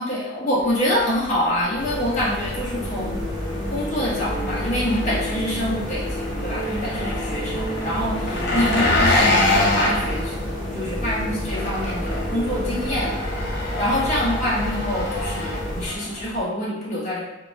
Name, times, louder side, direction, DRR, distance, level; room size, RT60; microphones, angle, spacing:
voice 1, 0.0-3.2 3.7-10.3 10.7-13.1 13.7-17.2, left 1 dB, 35° left, -7 dB, 0.9 m, -26 dB
Engine, 0.6-16.4, left 2 dB, 55° left, 0.5 m, -27 dB
sound 1, 1.8-15.9, equal, 20° right, 0.5 m, -30 dB
sound 2, 2.7-13.2, left 1 dB, 5° left, 1.4 m, -34 dB
4.0 x 2.4 x 2.5 m, 0.99 s
head